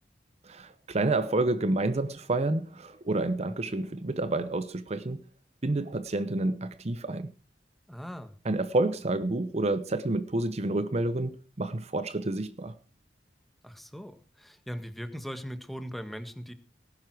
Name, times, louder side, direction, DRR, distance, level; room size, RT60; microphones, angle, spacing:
voice 1, 0.4-5.2 5.6-7.3 8.4-12.7, right 2 dB, 40° right, 0.7 m, -29 dB
voice 2, 7.9-8.3 13.6-16.5, equal, ahead, 1.6 m, -39 dB
19.0 x 11.0 x 4.8 m
head